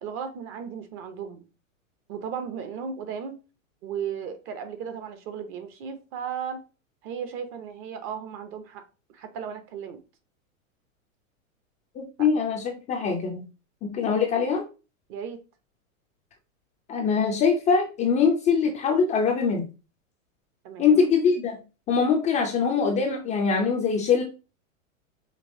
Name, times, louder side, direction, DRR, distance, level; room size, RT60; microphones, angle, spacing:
voice 1, 0.0-1.4 2.1-3.3 3.8-6.6 7.0-8.8 9.1-10.0 12.2-12.3 15.1-15.4 20.6-21.1, right 7 dB, 30° right, 0.6 m, -35 dB
voice 2, 12.0-13.4 13.8-14.6 16.9-19.7 20.8-21.5 21.9-24.2, left 5 dB, 20° left, 0.4 m, -23 dB
5.3 x 2.8 x 2.6 m
hypercardioid pair, 125°, 41 cm